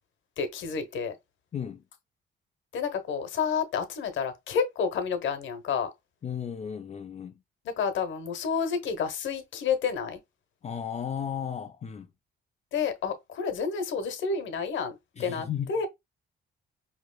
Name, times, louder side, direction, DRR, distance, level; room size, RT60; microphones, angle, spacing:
voice 1, 0.4-1.2 2.7-5.9 7.6-10.2 12.7-15.9, left 6 dB, 75° left, 1.1 m, -30 dB
voice 2, 1.5-1.8 6.2-7.4 10.6-12.1 15.2-15.7, left 8 dB, 35° left, 0.5 m, -34 dB
4.9 x 3.1 x 2.2 m
cardioid pair, 90°, 20 cm